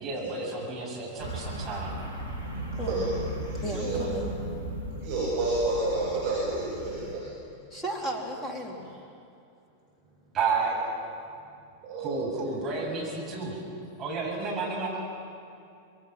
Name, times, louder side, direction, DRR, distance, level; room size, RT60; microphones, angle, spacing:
voice 1, 0.0-2.0 10.3-10.8 12.0-13.6 14.0-14.9, right 4 dB, 25° right, -3 dB, 7.5 m, -31 dB
voice 2, 1.1-1.6 2.2-4.1 4.9-7.3 11.8-12.4 12.7-13.0, right 2 dB, 50° right, -5 dB, 6.3 m, -31 dB
sound 1, 1.2-7.2, right 1 dB, 85° right, 2.1 m, -36 dB
voice 3, 2.8-3.1 3.6-4.2 7.7-8.8, equal, 10° left, 0 dB, 3.5 m, -34 dB
26.0 x 22.0 x 6.1 m, 2.6 s
figure-of-eight pair, 90°, 0 cm